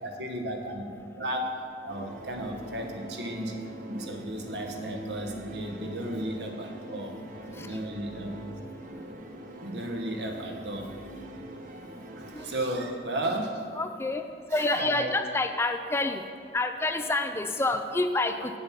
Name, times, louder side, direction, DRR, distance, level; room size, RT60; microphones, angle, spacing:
voice 1, 0.0-3.6 3.9-7.2 7.6-8.4 9.6-10.9 12.2-13.5 14.5-15.2, right 1 dB, 70° right, 3 dB, 1.1 m, -34 dB
sound 1, 1.9-12.5, right 1 dB, 45° right, 0.7 m, -44 dB
sound 2, 4.6-7.8, right 1 dB, 75° left, 2.3 m, -45 dB
voice 2, 13.8-14.2 14.5-16.2 16.5-18.6, left 2 dB, 15° left, 7 dB, 0.3 m, -28 dB
8.4 x 7.7 x 5.8 m, 2.4 s
head